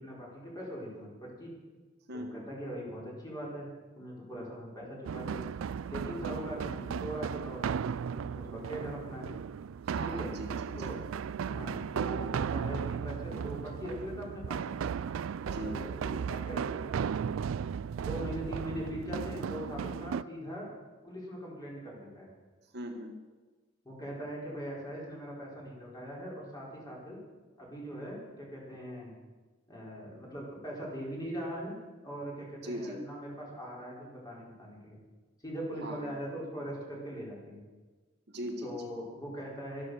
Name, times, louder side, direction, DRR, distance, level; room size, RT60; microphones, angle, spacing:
voice 1, 0.0-1.5 2.1-3.7 3.9-5.4 5.8-7.8 8.1-9.3 10.0-10.3 10.8-11.0 11.4-14.8 15.4-17.3 18.0-20.7 21.0-22.3 23.8-27.2 27.6-29.1 29.7-31.7 32.0-35.0 35.4-37.6 38.6-39.8, equal, 20° left, -4 dB, 4.7 m, -41 dB
voice 2, 2.1-2.4 9.8-10.9 15.5-15.8 22.7-23.2 32.6-33.0 35.8-36.1 38.3-38.7, equal, 55° right, 3 dB, 1.6 m, -40 dB
sound 1, 5.0-20.2, right 7 dB, 75° right, 0.4 m, -35 dB
13.0 x 12.0 x 6.5 m, 1.3 s
head